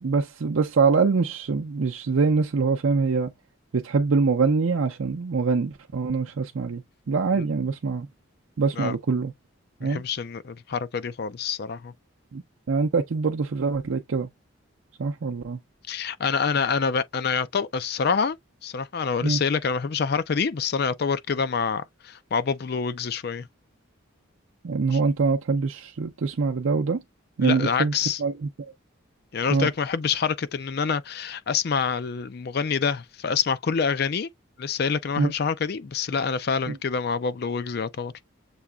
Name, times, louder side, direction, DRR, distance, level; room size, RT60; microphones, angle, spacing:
voice 1, 0.0-3.3 3.7-8.1 8.6-9.3 9.8-10.0 12.3-12.4 12.7-14.3 15.0-15.6 19.2-19.4 24.6-27.0 27.4-28.7 29.5-29.7 35.2-35.3 36.7-36.8, right 4 dB, 75° right, 0.5 m, -24 dB
voice 2, 9.8-11.9 15.9-18.4 18.6-23.5 24.9-25.0 27.4-28.2 29.3-34.3 34.6-38.1, left 6 dB, 50° left, 0.4 m, -26 dB
6.9 x 2.9 x 2.2 m
head